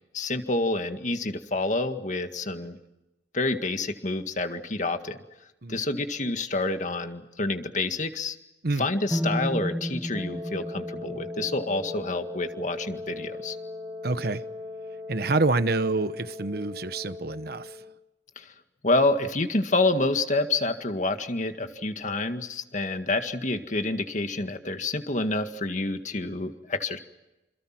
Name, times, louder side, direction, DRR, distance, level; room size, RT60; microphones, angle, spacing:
voice 1, 0.1-2.8 3.3-5.2 5.7-8.4 8.8-13.6 18.4-18.5 18.8-27.0, left 2 dB, 40° left, 1.9 m, -28 dB
sound 1, 9.1-13.1, equal, 5° right, 1.0 m, -33 dB
Wind instrument woodwind instrument, 10.1-18.0, left 3 dB, 25° right, 4.2 m, -39 dB
voice 2, 14.0-14.4 15.1-17.8, right 3 dB, 55° right, 1.0 m, -27 dB
28.0 x 27.0 x 6.0 m
head